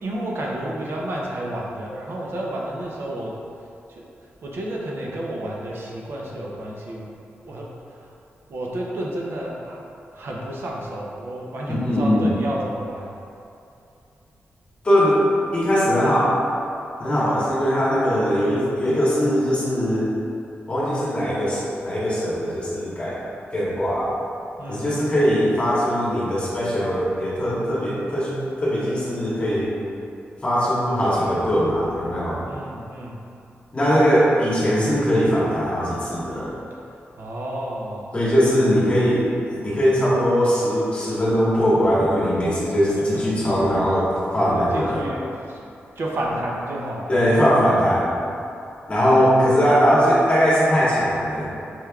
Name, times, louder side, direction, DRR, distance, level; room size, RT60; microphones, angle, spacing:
voice 1, 0.0-3.4 3.9-4.0 4.4-7.1 7.4-8.0 8.5-9.8 10.1-13.1 18.3-18.6 24.6-24.9 32.4-33.2 37.2-38.1 42.9-43.2 44.4-47.2, right 1 dB, 60° right, -3 dB, 0.6 m, -31 dB
voice 2, 11.8-12.3 14.8-15.2 15.5-16.3 17.0-20.1 20.7-23.2 23.5-24.1 24.7-28.3 28.6-29.7 30.4-32.4 33.7-36.5 38.1-45.0 47.1-48.1 48.9-51.5, equal, 25° left, -7 dB, 1.2 m, -20 dB
5.9 x 3.3 x 2.3 m, 2.6 s
wide cardioid pair, 115°, 4 cm